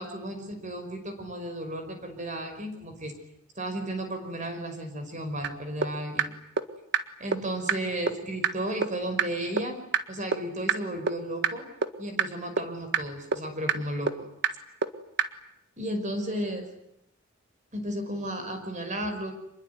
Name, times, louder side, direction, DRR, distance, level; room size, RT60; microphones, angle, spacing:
voice 1, 0.0-3.1 3.6-6.3 7.2-9.8 10.1-11.7 12.0-14.1 15.8-16.7 17.7-19.3, right 1 dB, 35° right, 6 dB, 5.4 m, -34 dB
sound 1, 5.4-5.5 5.8-5.9 6.2-6.3 6.6-6.7 6.9-7.0 7.3-7.4 7.7-7.8 8.1-8.2 8.4-8.5 8.8-8.9 9.2-9.3 9.6-9.7 9.9-10.0 10.3-10.4 10.7-10.8 11.1-11.2 11.4-11.5 11.8-11.9 12.2-12.3 12.6-12.7 12.9-13.0 13.3-13.4 13.7-13.8 14.1-14.2 14.4-14.5 14.8-14.9 15.2-15.3, right 6 dB, 55° right, 1.7 m, -24 dB
27.0 x 21.5 x 9.6 m, 0.81 s
head